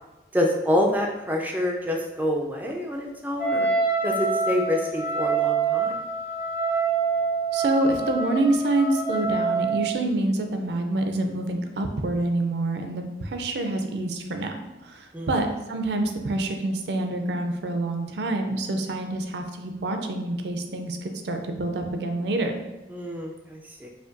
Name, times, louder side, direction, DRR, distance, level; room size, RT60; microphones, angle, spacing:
voice 1, 0.3-3.7 4.0-6.0 15.1-15.4 22.9-23.9, left 1 dB, 10° right, 1 dB, 0.3 m, -27 dB
Wind instrument woodwind instrument, 3.4-10.0, right 4 dB, 55° left, 0.7 m, -26 dB
voice 2, 7.5-22.5, right 2 dB, 75° right, 5 dB, 0.4 m, -27 dB
5.0 x 2.2 x 2.5 m, 1.1 s
head